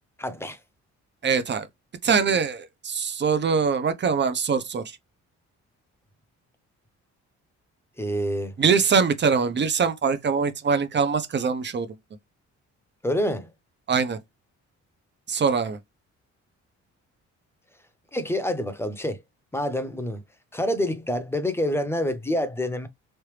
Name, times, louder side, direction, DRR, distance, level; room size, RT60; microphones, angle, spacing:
voice 1, 0.2-0.6 8.0-8.6 13.0-13.5 18.1-19.2 19.5-20.2 20.5-22.9, left 1 dB, 10° left, 0.8 m, -27 dB
voice 2, 1.2-1.7 2.0-4.8 8.6-11.9 13.9-14.2 15.3-15.8, right 5 dB, 35° right, 0.8 m, -23 dB
3.3 x 2.7 x 3.3 m
cardioid pair, 90°, 30 cm